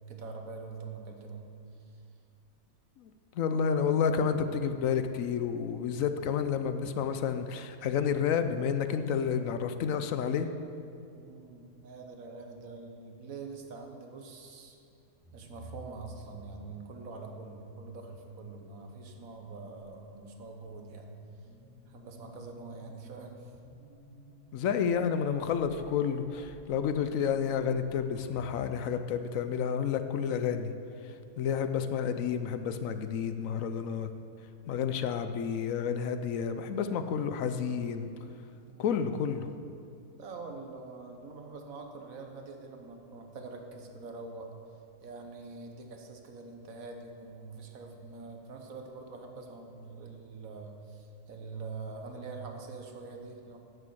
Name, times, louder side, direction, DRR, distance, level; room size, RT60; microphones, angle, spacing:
voice 1, 0.1-1.5 11.1-14.8 15.3-21.1 21.9-23.5 30.4-30.6 38.7-38.9 40.2-44.5 45.0-53.6, right 3 dB, 70° right, 3 dB, 1.5 m, -44 dB
voice 2, 3.4-10.5 24.5-30.7 31.4-34.1 34.7-38.1 38.8-39.5, left 7 dB, 75° left, 9 dB, 1.0 m, -30 dB
sound 1, 15.1-28.8, right 1 dB, 10° right, 2.1 m, -54 dB
10.5 x 6.7 x 7.7 m, 2.5 s
omnidirectional pair, 1.5 m